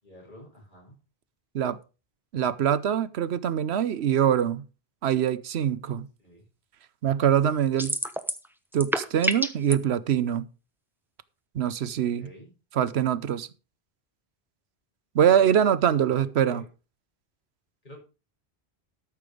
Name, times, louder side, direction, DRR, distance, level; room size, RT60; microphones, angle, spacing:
voice 1, 0.0-1.0 6.2-6.5 12.2-12.5 15.2-15.5 15.9-16.6 17.8-18.0, equal, 50° left, 6.5 m, -48 dB
voice 2, 2.3-4.6 5.0-6.1 7.0-7.9 8.7-10.5 11.5-12.3 12.7-13.5 15.1-16.6, right 9 dB, 80° right, 1.0 m, -23 dB
sound 1, 7.8-8.5 8.7-9.7, equal, ahead, 1.0 m, -27 dB
13.0 x 6.9 x 5.0 m
omnidirectional pair, 1.1 m